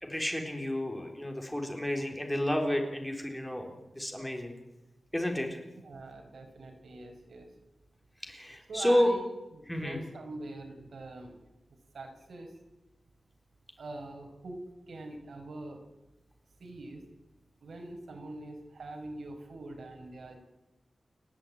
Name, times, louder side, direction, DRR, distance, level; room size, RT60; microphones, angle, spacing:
voice 1, 0.0-4.5 5.1-5.6 8.2-9.1 9.7-10.0, left 1 dB, 10° left, 2 dB, 4.0 m, -31 dB
voice 2, 5.8-7.5 8.7-9.3 9.5-11.4 11.9-12.5 13.8-15.8 16.6-17.0 17.6-20.4, right 2 dB, 85° right, 3 dB, 5.2 m, -43 dB
29.5 x 11.0 x 9.7 m, 1.0 s
wide cardioid pair, 140°, 0 cm